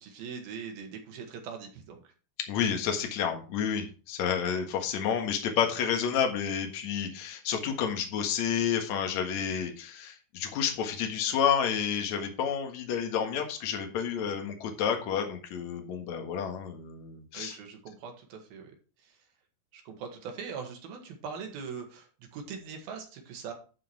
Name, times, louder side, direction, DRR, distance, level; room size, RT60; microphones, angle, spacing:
voice 1, 0.0-2.1 17.3-18.7 19.0-19.2 19.7-23.5, right 6 dB, 85° right, 3 dB, 3.7 m, -41 dB
voice 2, 2.5-17.6, left 7 dB, 60° left, 4 dB, 2.5 m, -30 dB
11.5 x 4.8 x 4.6 m, 0.37 s
omnidirectional pair, 4.1 m